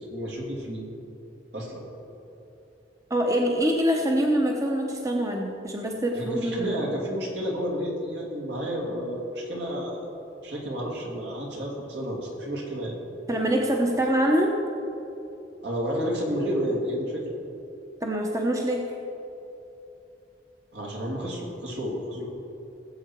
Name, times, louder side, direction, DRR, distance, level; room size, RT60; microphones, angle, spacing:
voice 1, 0.1-0.8 1.5-1.8 6.2-10.0 10.4-12.9 15.6-17.2 20.7-22.3, equal, 70° right, -2 dB, 2.7 m, -31 dB
voice 2, 3.1-6.8 13.3-14.5 18.0-18.9, right 1 dB, 20° right, 1 dB, 0.9 m, -24 dB
19.0 x 7.9 x 4.6 m, 2.9 s
head